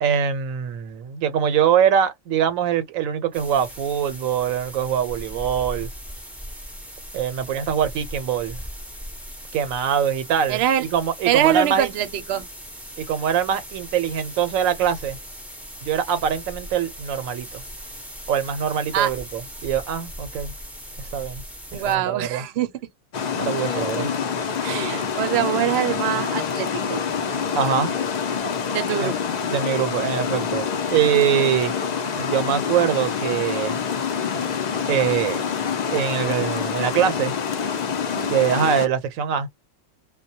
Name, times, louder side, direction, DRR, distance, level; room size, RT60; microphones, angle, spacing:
voice 1, 0.0-5.9 7.1-8.6 9.5-10.6 10.9-11.9 13.0-15.2 15.8-17.6 18.3-20.5 21.0-21.4 21.9-22.4 23.4-24.1 27.6-27.9 29.0-29.1 29.5-31.7 32.2-33.8 34.9-35.4 35.9-37.3 38.3-39.5, right 8 dB, 90° right, 1.0 m, -23 dB
sound 1, 3.3-22.0, equal, ahead, 0.3 m, -39 dB
voice 2, 10.5-10.8 11.3-12.5 18.9-19.1 21.7-22.7 23.7-24.1 24.6-27.0 28.7-29.2 38.2-38.5, right 11 dB, 65° right, 0.7 m, -24 dB
Water, 23.1-38.9, left 6 dB, 85° left, 0.3 m, -26 dB
sound 2, 25.3-25.6 25.8-26.1 26.4-27.7 28.0-28.3 28.5-28.8 29.0-29.3 29.6-29.9 30.1-30.4 30.7-30.9 31.2-31.5 31.7-32.0, left 5 dB, 55° left, 0.7 m, -37 dB
2.2 x 2.1 x 2.6 m
omnidirectional pair, 1.4 m